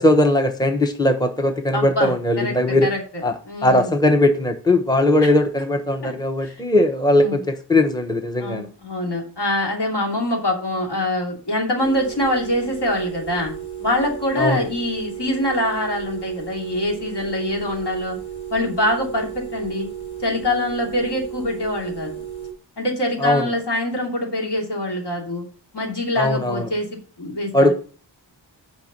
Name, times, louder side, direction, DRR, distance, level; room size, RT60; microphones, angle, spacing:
voice 1, 0.0-2.9 3.2-3.3 3.6-8.7 14.4-14.7 23.2-23.5 26.2-26.7 27.5-27.7, left 1 dB, 10° left, 0.9 m, -19 dB
voice 2, 1.7-3.0 3.5-3.9 5.2-5.3 6.0-6.1 6.4-6.5 7.2-7.4 8.4-13.5 13.8-18.2 18.5-19.9 20.2-22.1 22.8-25.4 25.7-26.9 27.2-27.7, left 1 dB, 70° left, 2.8 m, -24 dB
sound 1, 11.8-22.5, right 9 dB, 40° left, 3.2 m, -34 dB
6.7 x 5.2 x 6.7 m
wide cardioid pair, 105°, 43 cm